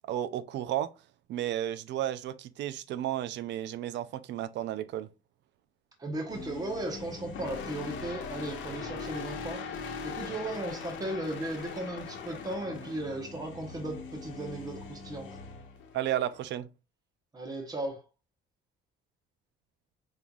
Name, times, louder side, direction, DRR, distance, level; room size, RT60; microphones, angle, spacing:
voice 1, 0.1-0.9 1.3-5.1 15.9-16.7, right 12 dB, 60° right, 0.5 m, -33 dB
voice 2, 6.0-15.4 17.3-18.0, right 1 dB, 20° right, 1.0 m, -36 dB
sound 1, 6.3-16.6, left 5 dB, 65° left, 1.1 m, -41 dB
5.4 x 3.2 x 2.3 m
cardioid pair, 155°, 21 cm